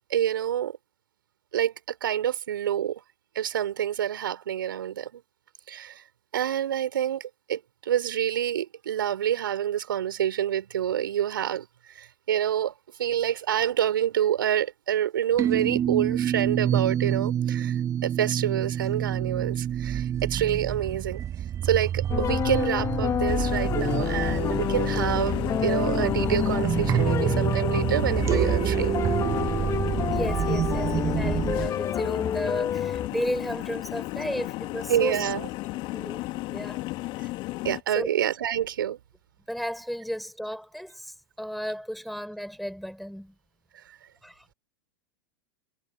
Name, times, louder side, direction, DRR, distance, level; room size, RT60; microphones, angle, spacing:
voice 1, 0.1-0.8 1.5-3.0 3.3-5.2 5.7-6.0 6.3-12.7 13.0-21.2 21.6-29.0 34.9-35.5 37.2-37.3 37.6-39.0 43.7-44.0, right 10 dB, 70° right, 5.6 m, -27 dB
sound 1, 15.4-31.7, right 10 dB, 25° right, 0.8 m, -27 dB
sound 2, 22.1-33.1, left 9 dB, 25° left, 3.0 m, -29 dB
sound 3, 23.3-37.8, left 20 dB, 40° left, 2.2 m, -34 dB
voice 2, 30.1-35.2 35.9-36.2 36.5-36.8 38.0-38.1 39.5-43.4 44.2-44.5, equal, ahead, 7.0 m, -34 dB
figure-of-eight pair, 90°, 12 cm